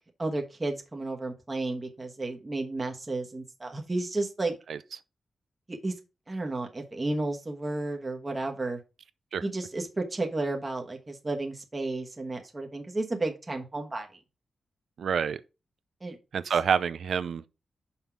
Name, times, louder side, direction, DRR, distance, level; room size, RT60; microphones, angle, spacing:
voice 1, 0.2-4.5 5.7-5.9 6.3-8.8 9.4-14.2 16.0-16.2, right 2 dB, 20° right, 1.2 m, -32 dB
voice 2, 15.0-15.4 16.3-17.5, right 7 dB, 65° right, 0.5 m, -27 dB
5.9 x 5.4 x 4.6 m
wide cardioid pair, 155°, 0 cm